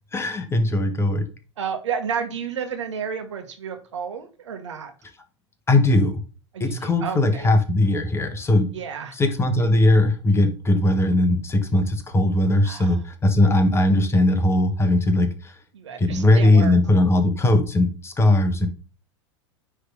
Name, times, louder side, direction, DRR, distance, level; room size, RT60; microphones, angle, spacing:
voice 1, 0.1-1.3 5.7-6.2 6.6-8.7 9.2-15.5 16.0-18.7, left 1 dB, 15° left, 1.3 m, -19 dB
voice 2, 1.6-4.9 6.5-7.5 8.7-9.2 12.6-13.0 15.7-16.8, right 7 dB, 70° right, 1.4 m, -31 dB
9.6 x 3.6 x 3.6 m
figure-of-eight pair, 90°, 16 cm